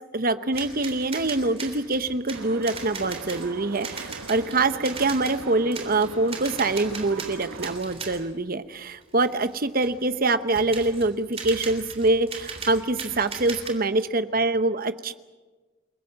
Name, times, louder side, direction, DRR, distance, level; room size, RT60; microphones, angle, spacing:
voice 1, 0.1-15.1, right 2 dB, 45° right, 12 dB, 0.9 m, -25 dB
sound 1, 0.5-8.3 8.8-10.0 10.5-13.7, right 5 dB, 30° right, 3.5 m, -38 dB
sound 2, 2.3-7.8, right 3 dB, 80° right, 1.1 m, -40 dB
29.0 x 18.5 x 7.4 m, 1.3 s
head